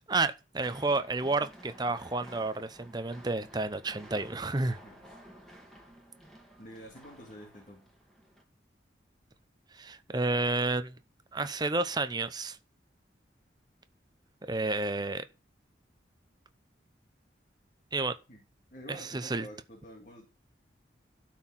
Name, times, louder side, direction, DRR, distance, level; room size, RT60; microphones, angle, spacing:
voice 1, 0.1-4.8 9.7-11.0 11.3-12.6 14.4-15.2 17.9-18.2 18.9-19.5, right 3 dB, 20° right, 0.7 m, -31 dB
sound 1, 0.6-8.4, equal, ahead, 2.2 m, -53 dB
voice 2, 6.6-7.9 18.3-18.4 18.7-20.3, equal, 45° left, 2.2 m, -48 dB
12.5 x 4.6 x 5.7 m
head